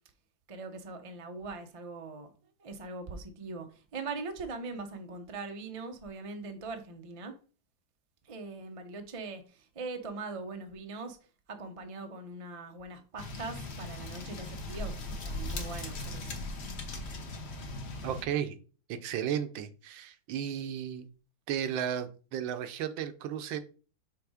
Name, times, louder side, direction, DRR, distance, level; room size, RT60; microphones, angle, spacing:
voice 1, 0.5-2.3 2.6-3.7 3.9-7.3 8.3-11.2 11.5-16.4, right 3 dB, 55° right, 0.3 m, -41 dB
sound 1, 13.2-18.2, left 2 dB, 45° left, 0.9 m, -39 dB
voice 2, 18.0-18.6 18.9-21.1 21.5-23.6, right 9 dB, 80° right, 1.4 m, -34 dB
5.9 x 3.7 x 4.8 m
omnidirectional pair, 2.1 m